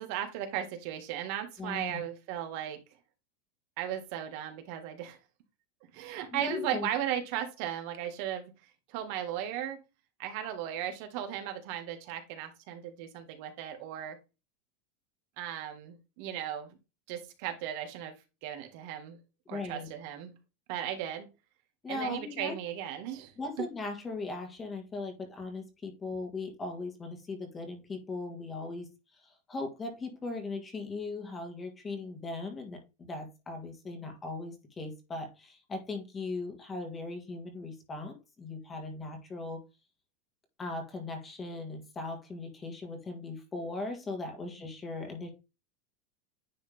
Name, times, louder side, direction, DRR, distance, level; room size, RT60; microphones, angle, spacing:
voice 1, 0.0-2.8 3.8-5.2 5.9-8.5 8.9-9.8 10.2-14.2 15.4-16.8 17.1-18.2 18.4-19.2 19.5-20.3 20.7-21.3 21.9-23.3, right 10 dB, 60° right, 6 dB, 1.8 m, -36 dB
voice 2, 1.6-2.0 6.3-6.9 19.5-19.9 21.8-22.5 23.4-39.6 40.6-45.3, left 3 dB, 20° left, 4 dB, 1.8 m, -39 dB
9.8 x 3.4 x 3.4 m, 0.27 s
supercardioid pair, 135°, 0 cm